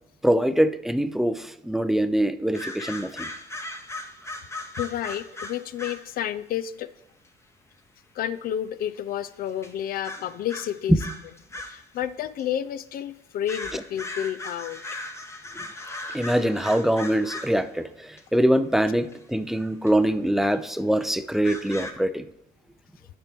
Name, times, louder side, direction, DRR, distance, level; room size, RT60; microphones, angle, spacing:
voice 1, 0.2-3.3 13.7-13.8 15.5-15.7 16.1-22.3, right 1 dB, ahead, 11 dB, 0.4 m, -24 dB
sound 1, 2.5-6.1 7.2-7.3 8.9-9.0 9.6-9.7 10.0-11.9 12.4-12.5 13.4-17.6 18.2-18.3 19.0-19.1 19.9-20.0 20.5-20.6 21.4-21.9, left 2 dB, 15° left, 0.9 m, -38 dB
voice 2, 4.8-6.9 8.2-11.0 11.6-15.0, left 10 dB, 60° left, 14 dB, 0.5 m, -30 dB
11.5 x 4.3 x 3.5 m, 0.80 s
cardioid pair, 110°, 17 cm